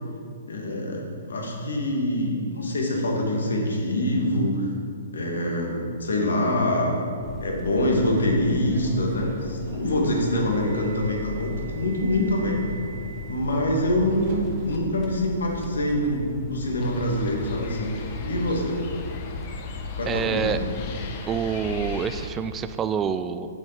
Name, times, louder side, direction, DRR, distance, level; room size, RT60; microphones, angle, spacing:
voice 1, 0.5-4.7 5.1-6.9 7.4-12.6 13.3-17.9 18.2-18.8 20.0-20.6, left 1 dB, 85° left, -1 dB, 2.3 m, -25 dB
sound 1, 7.2-22.0, left 4 dB, 15° left, 0.8 m, -39 dB
Subway metro underground, 8.1-15.7, right 2 dB, 50° right, 1.8 m, -44 dB
sound 2, 16.8-22.3, left 3 dB, 40° left, 1.2 m, -37 dB
voice 2, 20.1-20.6 21.3-23.5, right 7 dB, 20° right, 11 dB, 0.4 m, -27 dB
7.9 x 7.4 x 5.9 m, 2.4 s
hypercardioid pair, 135°, 0 cm